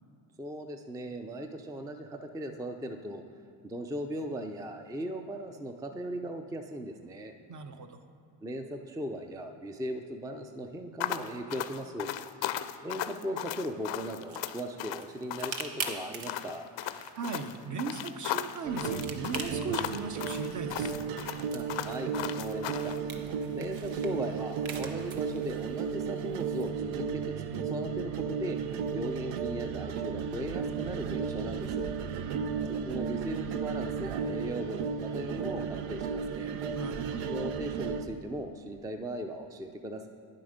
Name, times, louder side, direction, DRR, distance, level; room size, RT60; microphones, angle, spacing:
voice 1, 0.4-3.2 3.6-7.3 8.4-12.1 12.8-16.7 21.5-23.0 23.5-28.6 28.9-31.9 32.7-36.5 37.3-40.1, right 1 dB, 10° right, 6 dB, 0.4 m, -38 dB
voice 2, 7.5-8.0 17.2-21.0 32.2-32.7 36.7-37.4, right 4 dB, 40° right, 7 dB, 0.8 m, -38 dB
sound 1, 11.0-23.0, left 12 dB, 65° left, 0.6 m, -36 dB
sound 2, 13.7-26.7, right 5 dB, 70° right, 1.1 m, -45 dB
sound 3, 18.6-38.0, right 6 dB, 90° right, 0.7 m, -34 dB
9.7 x 7.7 x 5.1 m, 2.6 s
cardioid pair, 85°, 48 cm